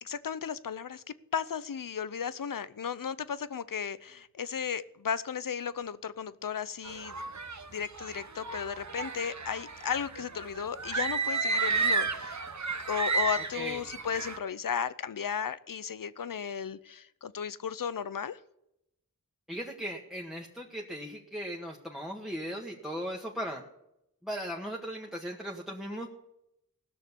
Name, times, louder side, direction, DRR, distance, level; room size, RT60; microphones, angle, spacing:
voice 1, 0.0-1.0 1.3-7.2 7.7-12.4 12.9-18.4, left 7 dB, 70° left, 16 dB, 0.7 m, -35 dB
sound 1, 6.8-14.4, right 4 dB, 55° right, 1.1 m, -32 dB
voice 2, 13.4-13.8 19.5-23.6 24.2-26.1, equal, ahead, -2 dB, 1.7 m, -38 dB
17.0 x 6.5 x 8.5 m, 0.84 s
wide cardioid pair, 50°, 34 cm